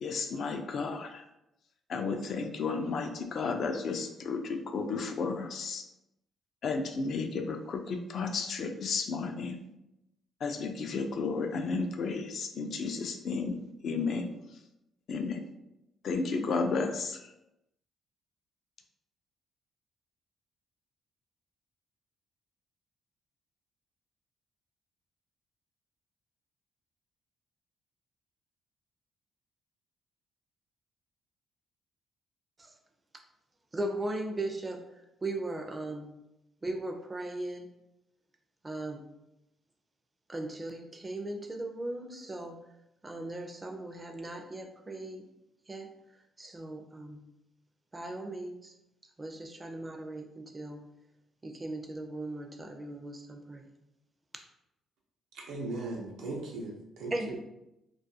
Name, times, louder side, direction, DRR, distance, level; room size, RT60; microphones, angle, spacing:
voice 1, 0.0-1.2 1.9-5.8 6.6-9.6 10.4-14.3 15.1-15.4 16.0-17.3, left 4 dB, 60° left, 5 dB, 0.3 m, -33 dB
voice 2, 33.7-34.8 35.2-36.1 36.6-37.7 38.6-39.0 40.3-42.6 43.0-45.2 45.7-45.9 46.4-47.2 47.9-48.7 49.2-50.8 51.4-53.7 57.1-57.4, right 2 dB, 25° right, 4 dB, 0.4 m, -38 dB
voice 3, 55.3-57.4, right 2 dB, 80° right, -1 dB, 0.6 m, -38 dB
2.3 x 2.2 x 2.7 m, 0.87 s
cardioid pair, 90°, 0 cm